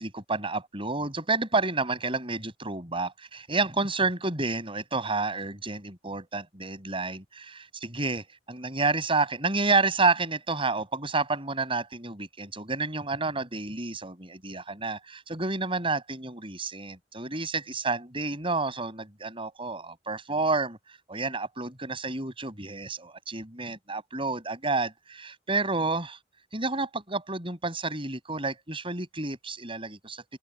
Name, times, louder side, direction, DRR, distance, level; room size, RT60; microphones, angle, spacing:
voice 1, 0.0-20.8 21.1-26.2 26.5-30.2, right 3 dB, 30° right, 7.1 m, -30 dB
open air
head